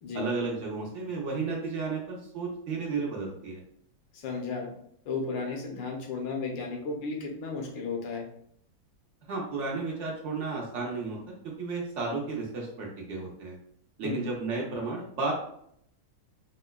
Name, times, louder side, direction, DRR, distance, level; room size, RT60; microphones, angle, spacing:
voice 1, 0.1-3.6 9.3-11.2 11.6-13.6 14.0-15.3, right 4 dB, 80° right, -2 dB, 0.6 m, -33 dB
voice 2, 4.1-4.7 5.1-8.2 14.0-14.2, left 4 dB, 75° left, 1 dB, 1.4 m, -34 dB
5.3 x 2.1 x 2.2 m, 0.69 s
omnidirectional pair, 2.1 m